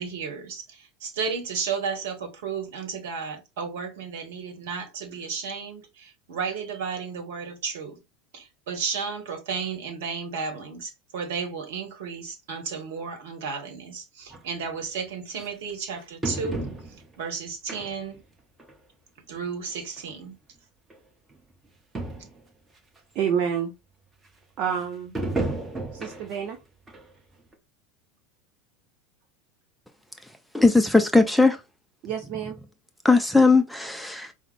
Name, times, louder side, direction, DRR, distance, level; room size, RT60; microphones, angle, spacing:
voice 1, 0.0-8.0 8.3-16.7 17.2-18.2 19.3-20.3, right 5 dB, 60° right, 1.1 m, -33 dB
sound 1, 14.3-14.4 15.4-15.5 16.2-17.2 17.7-18.2 18.6-18.7 19.7-19.8 20.0-20.1 20.9-21.0 21.3-21.4 21.7-21.8 21.9-22.4 23.0-23.1 25.1-26.5 26.9-27.0 27.5-27.6, right 2 dB, 15° right, 1.0 m, -32 dB
voice 2, 23.1-23.7 24.6-25.1 25.9-26.6 32.0-32.6, right 8 dB, 45° right, 0.6 m, -28 dB
voice 3, 30.5-31.6 33.0-34.3, left 3 dB, ahead, 0.4 m, -18 dB
4.9 x 2.1 x 3.1 m
figure-of-eight pair, 80°, 0 cm